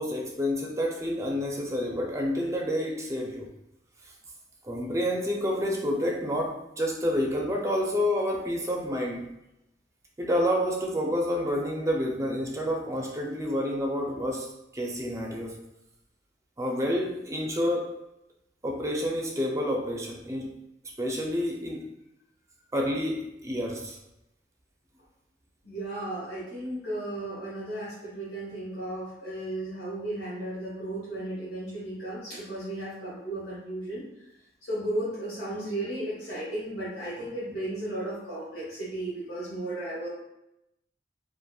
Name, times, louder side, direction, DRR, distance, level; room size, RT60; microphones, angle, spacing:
voice 1, 0.0-3.5 4.6-9.3 10.2-15.6 16.6-18.0 18.6-20.5 21.0-21.9 22.7-24.0, equal, 15° right, 0 dB, 0.4 m, -29 dB
voice 2, 25.6-34.3 34.6-40.1, right 1 dB, 75° left, -10 dB, 1.1 m, -35 dB
2.8 x 2.5 x 2.2 m, 0.86 s
head